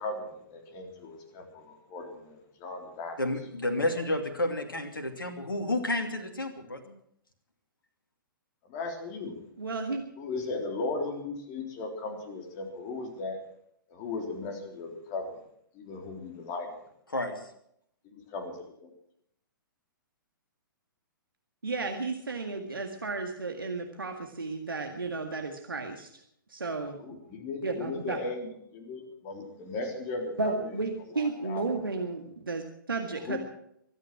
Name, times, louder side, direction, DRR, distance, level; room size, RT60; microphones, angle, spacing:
voice 1, 0.0-3.2 8.7-9.3 10.2-13.4 13.9-15.3 15.8-16.7 18.1-18.5 18.8-18.9 27.0-30.5 31.4-31.6 33.3-33.4, left 3 dB, 30° left, 4 dB, 3.8 m, -36 dB
voice 2, 3.2-6.9 17.1-17.5, left 1 dB, 75° left, 5 dB, 2.8 m, -31 dB
voice 3, 9.6-10.0 21.6-26.1 26.5-27.2 27.6-28.2 30.4-33.4, right 3 dB, 75° right, 4 dB, 1.9 m, -33 dB
24.0 x 9.8 x 6.2 m, 0.71 s
figure-of-eight pair, 120°, 12 cm